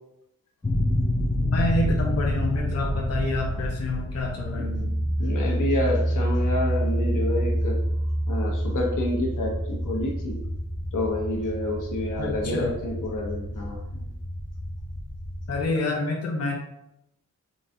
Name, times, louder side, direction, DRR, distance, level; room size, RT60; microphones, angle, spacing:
sound 1, 0.6-15.7, equal, 10° left, 0.3 m, -27 dB
voice 1, 1.4-5.0 12.2-12.8 15.5-16.6, left 2 dB, 55° left, -1 dB, 0.6 m, -28 dB
voice 2, 5.2-7.8 8.3-10.4 10.9-14.1, left 1 dB, 80° left, -1 dB, 1.0 m, -29 dB
3.9 x 3.8 x 2.7 m, 0.83 s
wide cardioid pair, 150°, 31 cm